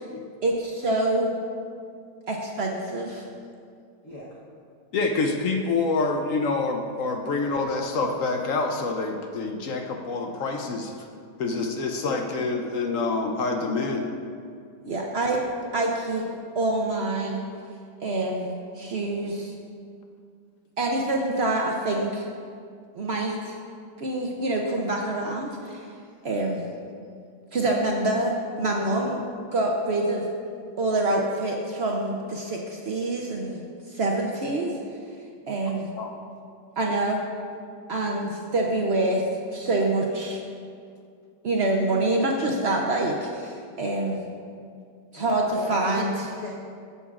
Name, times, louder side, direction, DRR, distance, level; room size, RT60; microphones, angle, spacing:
voice 1, 0.4-1.3 2.3-3.2 14.8-15.4 15.7-16.2 16.5-17.4 18.0-18.5 18.8-19.5 20.8-22.2 22.9-23.5 24.0-25.8 26.2-26.6 27.5-29.2 29.5-30.3 30.8-33.6 33.9-34.8 35.5-35.9 36.8-37.2 37.9-39.2 39.5-40.4 41.4-44.2 45.1-46.1, right 2 dB, 75° right, -1 dB, 0.5 m, -26 dB
voice 2, 4.9-10.9 11.4-14.1 36.0-36.1 42.5-42.6, left 3 dB, 65° left, 3 dB, 0.8 m, -27 dB
voice 3, 45.1-46.5, left 2 dB, 50° left, -6 dB, 1.3 m, -37 dB
15.5 x 6.9 x 2.4 m, 2.3 s
omnidirectional pair, 2.0 m